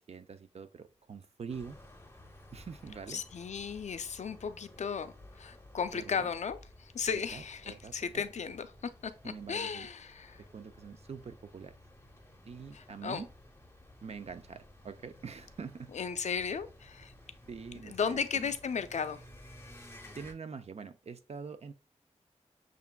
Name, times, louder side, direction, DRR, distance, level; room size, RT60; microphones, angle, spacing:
voice 1, 0.1-1.8 2.5-3.2 5.9-6.3 7.1-8.2 9.2-9.9 10.4-11.8 12.4-13.3 14.0-15.9 17.5-18.5 20.2-21.7, right 5 dB, 60° right, 0.5 m, -45 dB
sound 1, 1.5-20.3, left 1 dB, 20° left, 0.7 m, -55 dB
voice 2, 3.1-10.4 12.7-13.2 15.9-17.1 17.9-19.2, left 6 dB, 70° left, 0.4 m, -35 dB
6.8 x 2.4 x 2.2 m
wide cardioid pair, 70°, 12 cm